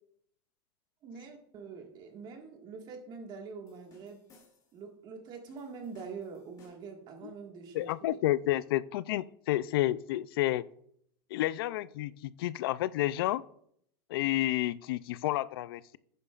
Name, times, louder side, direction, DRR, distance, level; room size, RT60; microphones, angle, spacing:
voice 1, 1.0-4.2 4.7-8.2, right 5 dB, 35° right, 4 dB, 1.7 m, -45 dB
sound 1, 3.7-4.8 5.5-7.0, left 3 dB, 30° left, 2.6 m, -62 dB
voice 2, 7.7-10.6 11.3-12.1 12.4-13.4 14.1-16.0, left 15 dB, 85° left, 18 dB, 0.4 m, -30 dB
11.0 x 8.9 x 2.4 m, 0.67 s
supercardioid pair, 140°, 12 cm